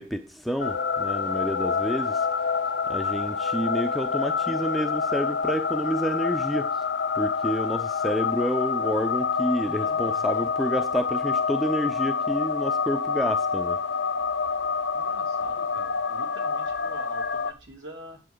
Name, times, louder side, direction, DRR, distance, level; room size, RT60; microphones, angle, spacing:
voice 1, 0.0-2.3 2.9-6.7 7.1-13.8, equal, ahead, 0.7 m, -29 dB
sound 1, 0.6-17.5, left 5 dB, 60° left, 0.7 m, -27 dB
voice 2, 9.7-10.3 14.9-18.2, right 1 dB, 65° right, 2.9 m, -45 dB
10.0 x 8.0 x 4.6 m
head